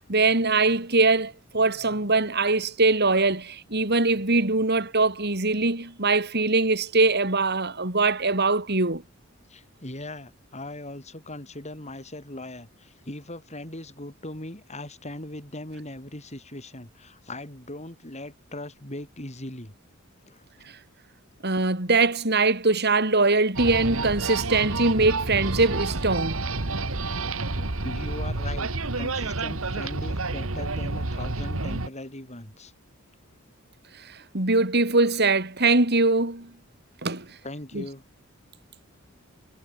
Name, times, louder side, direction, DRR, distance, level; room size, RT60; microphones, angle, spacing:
voice 1, 0.1-9.0 21.4-26.4 34.1-36.5 37.0-37.3 37.7-37.8, right 3 dB, 50° right, 4.3 m, -22 dB
voice 2, 9.5-19.7 20.3-20.7 27.6-32.7 37.4-38.0, left 1 dB, 35° left, 6.9 m, -39 dB
sound 1, 23.6-31.9, right 3 dB, 75° right, 2.0 m, -29 dB
head